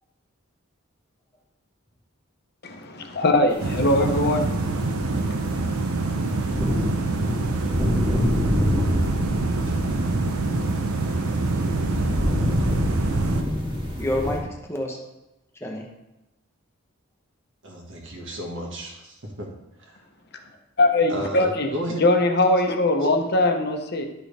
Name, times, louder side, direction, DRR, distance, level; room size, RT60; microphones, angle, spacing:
voice 1, 2.6-4.5 20.8-21.7 22.0-24.1, left 2 dB, 50° left, 4 dB, 0.9 m, -21 dB
sound 1, 3.6-13.4, right 3 dB, 85° right, 0.8 m, -25 dB
sound 2, 4.0-4.1 4.7-14.4, equal, 20° right, 2.1 m, -27 dB
voice 2, 14.0-15.0 15.6-15.9, left 1 dB, 10° left, 0 dB, 1.0 m, -32 dB
voice 3, 17.6-19.5 19.8-20.0 21.1-22.0 23.0-23.1, equal, 60° right, -1 dB, 1.8 m, -33 dB
11.5 x 6.3 x 3.4 m, 0.96 s
head